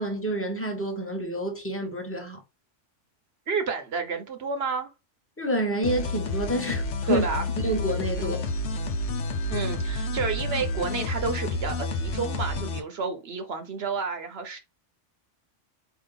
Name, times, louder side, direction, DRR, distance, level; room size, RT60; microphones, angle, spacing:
voice 1, 0.0-2.4 5.4-7.2 7.6-8.4, right 1 dB, 10° left, 0.9 m, -28 dB
voice 2, 3.5-4.9 7.1-7.4 8.2-8.3 9.5-14.6, right 5 dB, 60° right, 0.9 m, -30 dB
sound 1, 5.8-12.8, left 2 dB, 70° left, 1.0 m, -29 dB
4.4 x 2.7 x 3.8 m
omnidirectional pair, 1.3 m